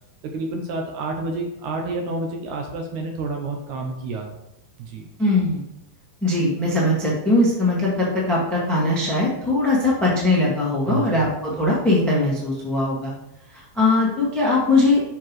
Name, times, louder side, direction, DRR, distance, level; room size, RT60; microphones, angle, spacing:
voice 1, 0.2-4.4 4.8-5.1 10.9-11.2, right 3 dB, 75° right, 3 dB, 1.9 m, -29 dB
voice 2, 5.2-5.6 6.2-13.1 13.5-15.0, left 2 dB, ahead, -5 dB, 0.4 m, -20 dB
7.2 x 5.7 x 3.1 m, 0.86 s
omnidirectional pair, 4.0 m